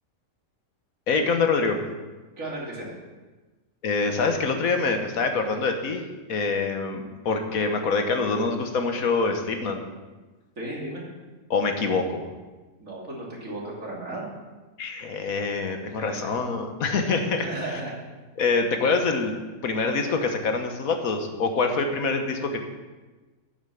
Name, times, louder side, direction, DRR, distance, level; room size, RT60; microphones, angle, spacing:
voice 1, 1.1-1.8 3.8-6.0 6.3-9.8 11.5-12.3 14.8-17.5 18.4-19.3 19.6-22.6, left 4 dB, 90° left, 5 dB, 1.6 m, -25 dB
voice 2, 2.4-2.9 10.6-11.0 12.8-14.3 15.9-16.3 17.4-17.9, right 2 dB, 70° right, -4 dB, 3.1 m, -34 dB
8.9 x 7.8 x 6.9 m, 1.2 s
omnidirectional pair, 1.4 m